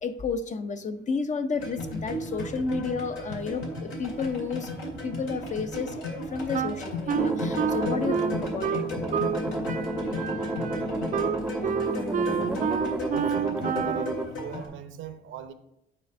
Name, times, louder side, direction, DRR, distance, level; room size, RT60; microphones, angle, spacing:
voice 1, 0.0-5.9 6.3-8.8, left 4 dB, 40° left, 0.7 m, -31 dB
sound 1, 1.6-14.7, left 1 dB, 75° left, 2.2 m, -35 dB
Wind instrument woodwind instrument, 6.5-9.4 9.7-14.2, right 8 dB, 40° right, 0.4 m, -29 dB
sound 2, 7.2-14.3, right 1 dB, 5° right, 0.7 m, -31 dB
voice 2, 13.1-15.5, right 9 dB, 75° right, 0.7 m, -39 dB
9.1 x 3.4 x 5.3 m
cardioid pair, 90°, 20 cm